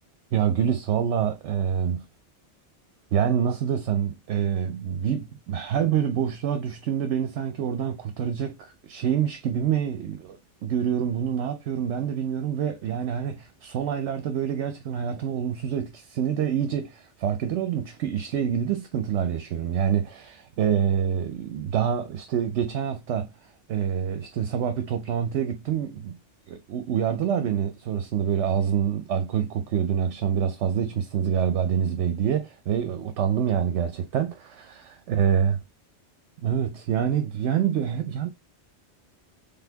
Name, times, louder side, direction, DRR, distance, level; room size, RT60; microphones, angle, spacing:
voice 1, 0.3-2.1 3.1-26.2 26.5-35.6 36.4-38.3, right 8 dB, 75° right, 0.9 m, -26 dB
4.1 x 3.5 x 2.8 m
omnidirectional pair, 1.2 m